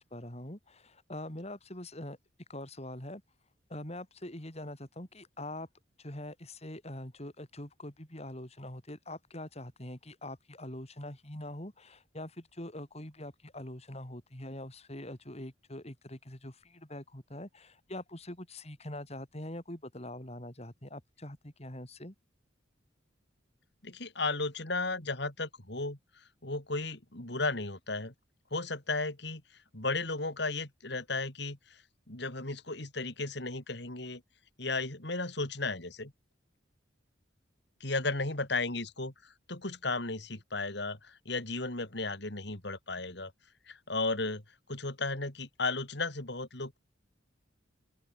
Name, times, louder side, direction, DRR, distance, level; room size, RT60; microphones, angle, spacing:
voice 1, 0.0-2.2 2.5-3.2 3.7-5.7 6.0-22.1, left 1 dB, 35° left, 3.8 m, -43 dB
voice 2, 23.8-26.0 26.4-28.1 28.5-29.4 29.7-31.8 32.1-34.2 34.6-36.1 37.8-43.3 43.7-44.4 44.7-46.8, left 3 dB, 60° left, 3.8 m, -34 dB
open air
head